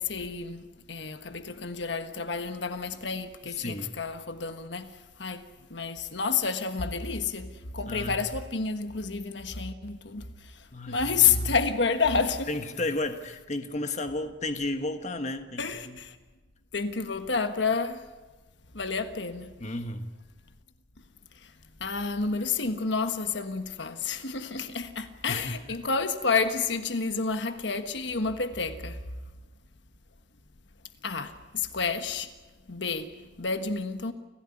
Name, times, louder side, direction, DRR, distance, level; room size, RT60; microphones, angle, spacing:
voice 1, 0.0-4.9 5.2-5.4 5.7-12.5 15.6-16.2 16.7-18.0 18.7-19.5 21.4-21.5 21.8-29.0 31.0-32.3 32.7-34.1, left 5 dB, 65° left, 1.4 m, -30 dB
voice 2, 3.4-3.9 7.9-8.2 10.7-11.5 12.5-16.0 19.6-20.1 25.3-25.6, left 2 dB, 40° left, 1.4 m, -33 dB
29.5 x 15.5 x 9.9 m
head